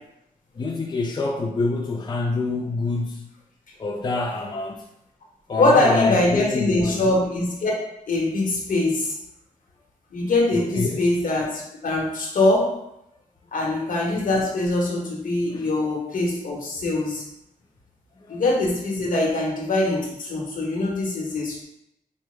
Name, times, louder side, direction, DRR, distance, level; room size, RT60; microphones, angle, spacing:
voice 1, 0.5-3.3 3.8-4.9 5.5-7.1 10.5-11.0 15.5-15.7 18.2-18.4, left 3 dB, 30° left, 1 dB, 0.3 m, -26 dB
voice 2, 5.6-7.7 8.1-9.1 10.1-12.7 13.5-17.2 18.3-21.6, left 2 dB, 70° left, -2 dB, 1.0 m, -22 dB
4.6 x 2.0 x 3.2 m, 0.82 s
wide cardioid pair, 100°, 15 cm